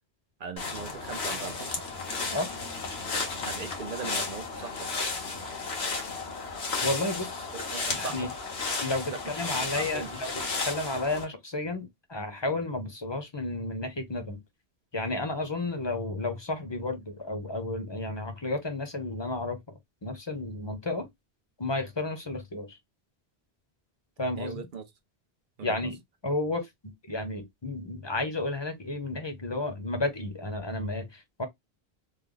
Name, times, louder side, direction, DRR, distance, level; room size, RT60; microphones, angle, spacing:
voice 1, 0.4-1.8 3.5-4.9 7.5-8.3 9.1-10.3 24.4-24.8 25.6-25.7, right 6 dB, 55° right, 0.8 m, -40 dB
sound 1, 0.6-11.2, left 4 dB, 80° left, 1.3 m, -33 dB
voice 2, 6.8-7.5 7.9-8.3 8.8-14.4 14.9-19.6 20.0-21.1 21.6-22.8 24.2-24.7 25.6-26.7 27.1-31.5, left 2 dB, 25° left, 0.8 m, -32 dB
3.4 x 2.2 x 3.7 m
omnidirectional pair, 1.1 m